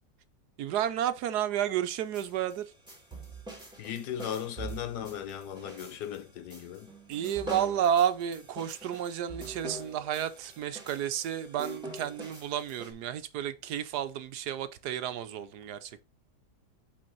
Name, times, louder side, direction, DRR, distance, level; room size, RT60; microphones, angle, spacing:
voice 1, 0.6-2.7 7.1-16.0, right 10 dB, 80° right, 1.3 m, -31 dB
sound 1, 1.9-12.9, right 2 dB, 5° right, 2.4 m, -44 dB
voice 2, 3.8-6.9, left 9 dB, 80° left, 1.4 m, -37 dB
7.7 x 4.3 x 4.0 m
omnidirectional pair, 1.7 m